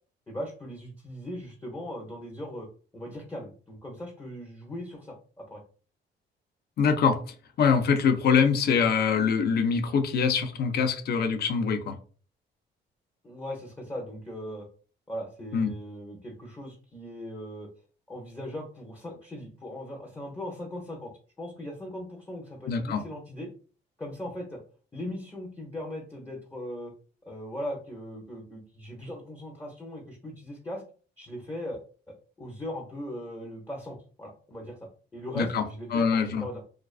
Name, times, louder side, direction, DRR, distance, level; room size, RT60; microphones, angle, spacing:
voice 1, 0.3-2.7 2.9-5.6 13.2-14.7 15.1-17.7 18.1-21.1 21.4-23.5 24.0-24.6 24.9-26.9 27.2-30.8 31.2-31.8 32.4-36.6, left 1 dB, 15° left, -1 dB, 0.6 m, -39 dB
voice 2, 6.8-11.9 15.5-15.7 22.7-23.0 35.4-35.6 35.9-36.4, left 6 dB, 55° left, 7 dB, 0.5 m, -24 dB
2.3 x 2.3 x 2.3 m, 0.40 s
cardioid pair, 90°, 20 cm